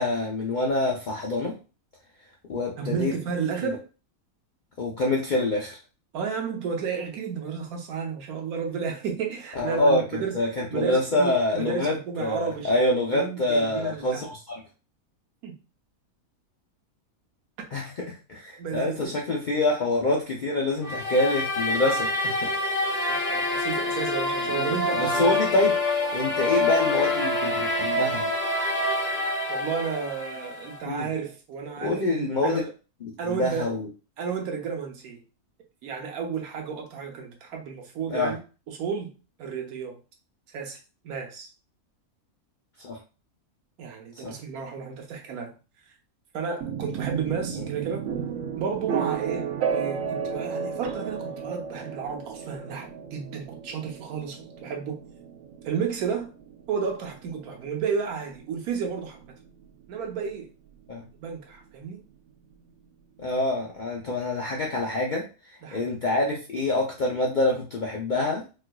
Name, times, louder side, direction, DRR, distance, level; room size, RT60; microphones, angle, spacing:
voice 1, 0.0-1.5 2.5-3.1 4.8-5.8 9.6-14.6 17.7-22.5 24.5-28.3 30.8-31.1 31.8-32.6 33.0-33.9 38.1-38.3 42.8-43.0 44.2-44.4 47.6-47.7 60.9-61.0 63.2-68.4, left 2 dB, 65° left, -2 dB, 0.4 m, -26 dB
voice 2, 2.8-3.8 6.1-10.3 10.7-14.3 15.4-15.5 18.6-19.1 23.1-25.4 26.4-26.5 29.5-32.7 33.2-33.7 34.2-35.2 35.8-38.4 38.7-39.1 39.4-40.0 40.5-40.8 41.0-41.5 43.8-45.5 45.9-46.0 46.3-48.0 48.6-49.5 49.7-55.0 55.6-56.3 56.7-59.2 59.9-60.5 61.2-62.0 65.6-65.8, right 6 dB, 90° right, 3 dB, 1.3 m, -32 dB
sound 1, 20.8-30.8, left 2 dB, 15° left, 0.7 m, -26 dB
sound 2, 46.6-60.4, right 7 dB, 70° right, 0.9 m, -34 dB
4.3 x 2.4 x 2.2 m, 0.33 s
omnidirectional pair, 1.5 m